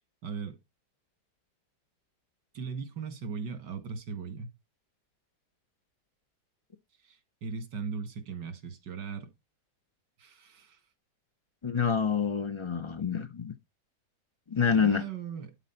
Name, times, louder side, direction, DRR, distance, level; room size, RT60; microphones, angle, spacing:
voice 1, 0.2-0.6 2.5-4.5 7.0-9.3 10.2-10.8 14.7-15.5, right 6 dB, 80° right, 2.4 m, -38 dB
voice 2, 11.6-13.5 14.5-15.0, left 6 dB, 50° left, 0.3 m, -27 dB
11.5 x 4.1 x 5.7 m
omnidirectional pair, 1.8 m